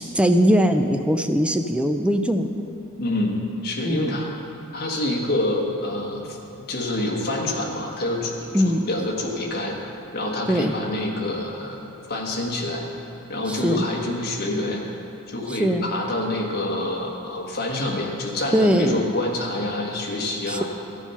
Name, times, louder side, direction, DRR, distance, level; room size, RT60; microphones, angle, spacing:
voice 1, 0.0-2.5 3.8-4.2 8.5-8.8 10.5-10.7 13.5-13.8 15.5-15.8 18.5-19.0 20.5-20.6, equal, 5° right, 6 dB, 0.4 m, -21 dB
voice 2, 3.0-4.3 4.7-6.4 6.7-12.8 13.3-14.9 15.3-20.6, left 1 dB, 45° left, -1 dB, 1.5 m, -27 dB
14.0 x 7.2 x 5.7 m, 2.8 s
head